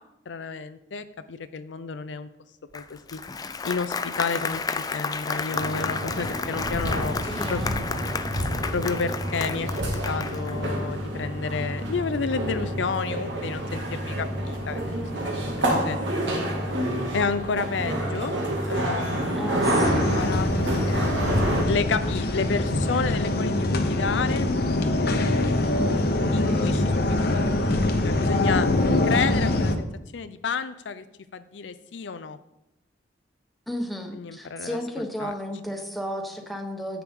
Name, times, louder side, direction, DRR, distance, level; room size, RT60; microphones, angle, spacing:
voice 1, 0.3-2.3 2.7-3.2 3.6-4.6 4.9-7.2 7.5-7.6 8.7-9.7 10.1-14.8 15.7-16.0 17.1-18.4 18.7-24.5 26.3-28.7 29.0-29.9 30.1-31.0 31.3-32.4 34.1-34.8 35.2-35.3, left 5 dB, 80° left, 11 dB, 0.5 m, -31 dB
Applause, 2.7-10.6, left 4 dB, 20° left, 0.4 m, -32 dB
sound 1, 5.5-21.6, right 1 dB, 90° right, 2.2 m, -28 dB
voice 2, 7.3-7.9 19.4-20.2 33.7-37.0, equal, ahead, 2 dB, 1.1 m, -33 dB
sound 2, 19.8-29.8, left 2 dB, 55° left, 0.9 m, -24 dB
10.5 x 8.4 x 3.7 m, 0.86 s
head